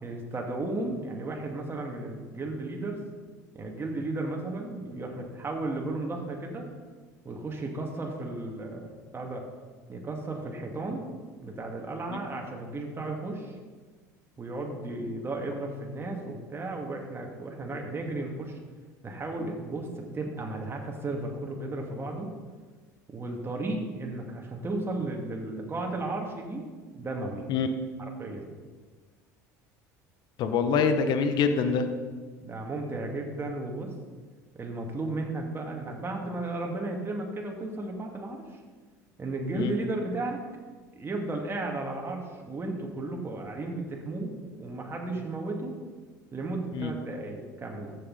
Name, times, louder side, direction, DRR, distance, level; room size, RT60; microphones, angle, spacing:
voice 1, 0.0-3.0 3.5-6.7 7.2-9.4 9.9-11.1 11.4-13.6 14.4-18.6 19.0-22.3 23.1-26.7 26.9-27.5 28.2-28.5 32.4-33.9 34.5-38.6 39.2-40.4 41.0-44.3 44.6-45.7 46.3-48.0, right 2 dB, 25° right, 1 dB, 2.2 m, -34 dB
voice 2, 30.4-31.9 39.5-39.7 46.7-46.9, left 5 dB, 55° left, 8 dB, 1.1 m, -25 dB
14.5 x 6.8 x 4.1 m, 1.4 s
hypercardioid pair, 75°, 9 cm